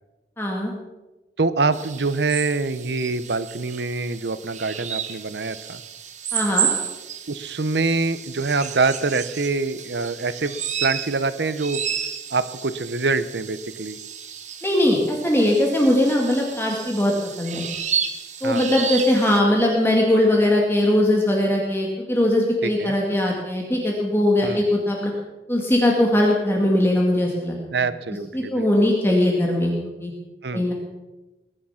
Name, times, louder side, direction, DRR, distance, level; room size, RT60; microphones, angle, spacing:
voice 1, 0.4-0.7 6.3-6.7 14.6-17.7 18.4-25.1 25.5-27.6 28.3-30.1 30.5-30.7, left 1 dB, 15° left, -1 dB, 2.1 m, -20 dB
voice 2, 1.4-5.8 7.3-11.8 12.3-14.0 18.4-18.6 22.6-22.9 24.4-24.6 27.7-28.7 30.4-30.7, right 3 dB, 80° right, 14 dB, 0.8 m, -25 dB
sound 1, 1.7-19.4, right 8 dB, 40° right, 1.2 m, -32 dB
20.5 x 11.0 x 5.8 m, 1.1 s
head